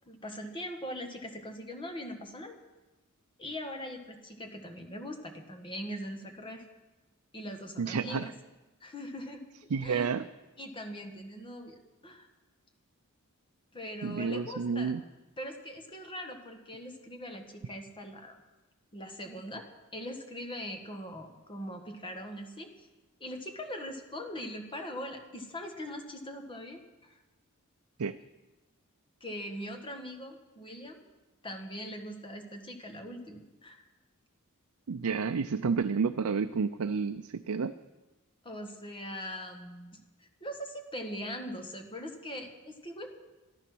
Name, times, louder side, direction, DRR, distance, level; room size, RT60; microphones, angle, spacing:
voice 1, 0.1-2.6 3.4-6.6 7.3-8.3 8.8-9.4 9.8-10.1 10.6-11.8 12.0-12.3 13.7-15.0 15.4-18.4 18.9-19.7 19.9-22.9 23.2-27.2 29.2-31.0 31.4-33.8 38.4-43.1, equal, 25° left, 4 dB, 1.6 m, -41 dB
voice 2, 7.8-8.3 9.7-10.3 14.0-15.0 28.0-28.2 34.9-37.7, right 5 dB, 90° right, 9 dB, 0.5 m, -30 dB
14.0 x 13.0 x 6.1 m, 1.1 s
head